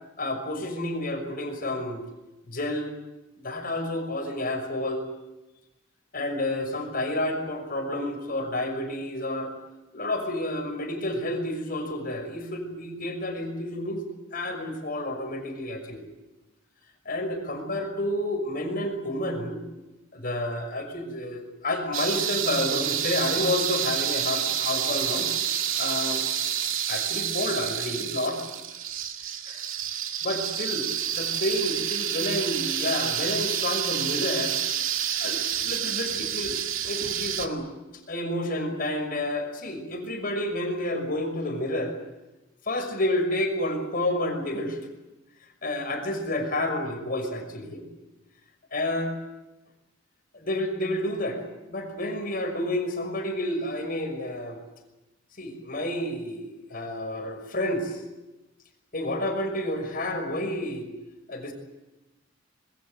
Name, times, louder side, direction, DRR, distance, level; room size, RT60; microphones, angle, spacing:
voice 1, 0.2-2.0 2.4-2.9 3.4-5.0 6.1-9.5 9.9-16.0 17.0-19.6 20.1-25.3 25.8-26.2 26.9-28.4 29.5-29.6 30.2-30.9 31.1-34.6 35.2-36.6 36.8-37.7 38.1-41.9 42.7-44.8 45.6-47.8 48.7-49.1 50.3-51.4 51.7-54.6 55.4-58.0 58.9-60.9 61.3-61.5, left 1 dB, 45° left, 5 dB, 6.0 m, -30 dB
sound 1, 21.9-37.5, right 10 dB, 80° right, 2.2 m, -29 dB
26.0 x 22.0 x 8.1 m, 1.0 s
head